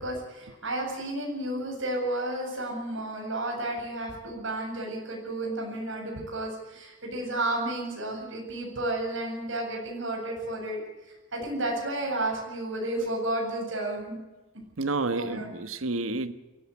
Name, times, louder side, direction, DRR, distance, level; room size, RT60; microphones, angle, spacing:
voice 1, 0.0-10.8 11.3-14.2 15.1-15.5, right 1 dB, 70° right, 0 dB, 8.0 m, -32 dB
voice 2, 14.8-16.3, right 3 dB, 90° right, 12 dB, 1.3 m, -29 dB
23.5 x 14.5 x 8.4 m, 1.1 s
head